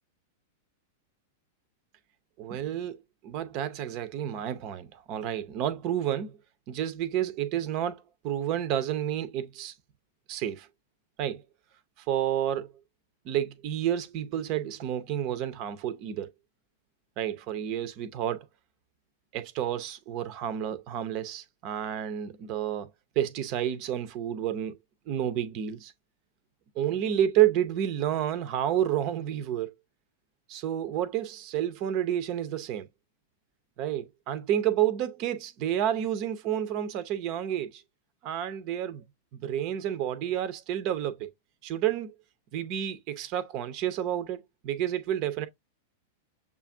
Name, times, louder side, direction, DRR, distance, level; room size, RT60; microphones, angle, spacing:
voice 1, 2.4-3.0 3.2-6.4 6.7-9.7 10.3-10.7 11.2-11.4 12.1-12.7 13.3-16.3 17.2-18.5 19.3-22.9 23.2-24.7 25.1-25.9 26.8-29.7 30.5-32.9 33.8-37.8 38.2-39.0 39.4-41.3 41.6-42.1 42.5-45.5, right 11 dB, 45° right, 0.6 m, -30 dB
6.7 x 2.4 x 2.6 m
figure-of-eight pair, 95°, 0 cm